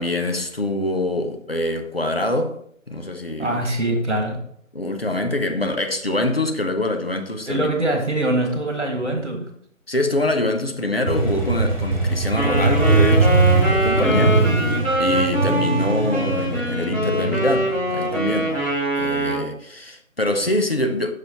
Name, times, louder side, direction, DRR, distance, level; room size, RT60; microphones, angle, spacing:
voice 1, 0.0-2.6 2.9-3.6 4.7-7.9 9.9-14.3 15.0-18.6 19.0-21.1, left 1 dB, 45° left, 0.8 m, -24 dB
voice 2, 3.4-4.4 7.5-9.5 10.8-10.9 14.0-14.4, right 1 dB, 55° right, 1.7 m, -23 dB
Motorcycle, 11.1-18.7, right 3 dB, 25° right, 2.9 m, -21 dB
Wind instrument woodwind instrument, 12.3-19.5, right 1 dB, 10° left, 2.0 m, -23 dB
7.0 x 6.2 x 2.9 m
figure-of-eight pair, 170°, 41 cm